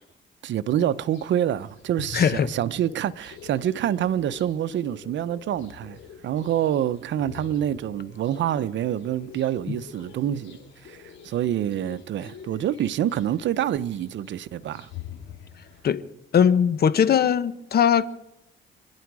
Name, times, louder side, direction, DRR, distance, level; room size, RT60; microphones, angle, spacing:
voice 1, 0.4-6.0 6.2-10.6 10.9-11.0 11.2-14.9, right 11 dB, 70° right, 0.7 m, -26 dB
sound 1, 0.7-15.8, left 7 dB, 70° left, 3.4 m, -45 dB
voice 2, 2.1-2.5 9.7-9.8 15.8-16.0 16.3-18.0, left 8 dB, 50° left, 1.1 m, -20 dB
26.0 x 10.5 x 4.8 m
cardioid pair, 90°, 20 cm